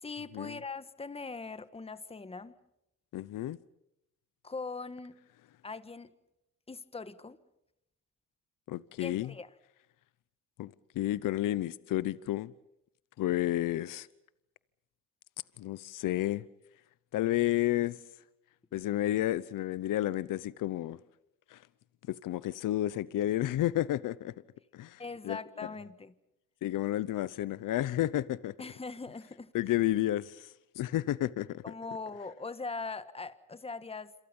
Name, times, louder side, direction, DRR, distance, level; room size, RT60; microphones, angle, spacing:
voice 1, 0.0-2.6 4.4-5.1 5.6-6.1 6.7-7.4 9.0-9.5 25.0-26.1 28.6-29.5 31.6-34.1, left 4 dB, 15° left, 1.5 m, -41 dB
voice 2, 3.1-3.6 8.7-9.3 10.6-12.5 13.2-14.1 15.6-16.5 17.1-18.0 18.7-21.0 21.5-21.6 22.1-24.3 24.7-25.4 26.6-28.5 29.5-30.5 30.8-31.6, left 14 dB, 70° left, 0.9 m, -31 dB
27.5 x 27.5 x 5.5 m
cardioid pair, 95°, 33 cm